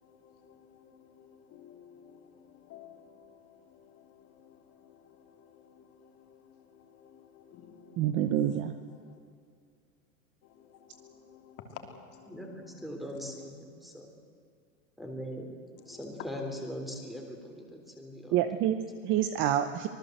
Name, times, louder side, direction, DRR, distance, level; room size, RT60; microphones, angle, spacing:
voice 1, 0.0-8.1 8.9-9.2 10.4-12.9 13.3-13.4 15.8-16.0, left 7 dB, 30° left, 4 dB, 3.1 m, -54 dB
voice 2, 8.0-8.7 18.3-19.9, right 11 dB, 25° right, 10 dB, 0.8 m, -27 dB
voice 3, 12.3-14.1 15.0-15.4 15.9-18.7, equal, ahead, 2 dB, 3.4 m, -41 dB
25.5 x 19.0 x 7.9 m, 2.3 s
supercardioid pair, 150°, 44 cm